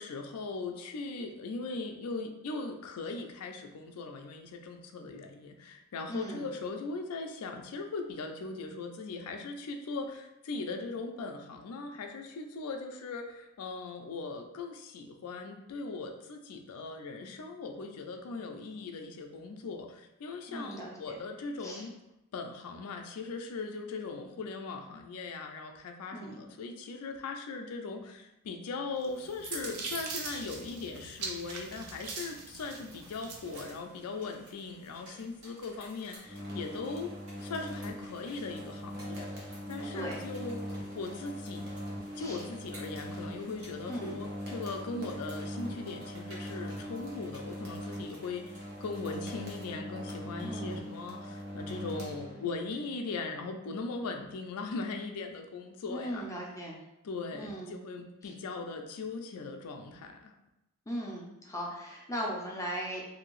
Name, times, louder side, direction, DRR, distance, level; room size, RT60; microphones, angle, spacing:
voice 1, 0.0-21.9 22.3-40.6 40.9-41.6 42.1-56.3 57.0-60.3, left 3 dB, 80° left, 4 dB, 0.4 m, -39 dB
voice 2, 6.1-6.5 20.5-21.2 21.6-21.8 26.1-26.4 39.9-40.2 42.1-42.4 43.9-44.2 50.4-50.8 55.9-56.8 57.3-57.8 58.2-58.3 60.9-63.0, equal, 15° left, -3 dB, 0.5 m, -38 dB
sound 1, 29.0-33.8, right 4 dB, 85° right, 0.5 m, -41 dB
sound 2, 32.6-49.8, equal, 65° right, 1.4 m, -56 dB
sound 3, 36.2-52.7, equal, 45° right, 0.7 m, -41 dB
2.8 x 2.6 x 3.0 m, 0.89 s
head